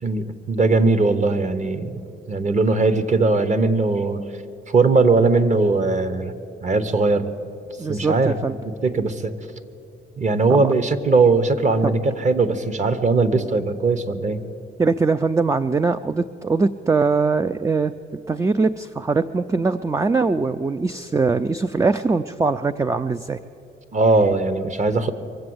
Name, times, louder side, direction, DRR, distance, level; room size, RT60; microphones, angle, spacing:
voice 1, 0.0-2.0 2.3-4.2 4.7-6.4 6.6-7.3 7.9-8.4 8.8-9.4 10.2-14.4 23.9-25.1, right 3 dB, 35° right, 12 dB, 1.0 m, -19 dB
voice 2, 7.8-8.5 10.5-10.7 11.8-11.9 14.8-17.9 18.3-23.4, right 4 dB, 15° right, 10 dB, 0.3 m, -21 dB
23.0 x 7.8 x 7.9 m, 2.7 s
cardioid pair, 90°, 20 cm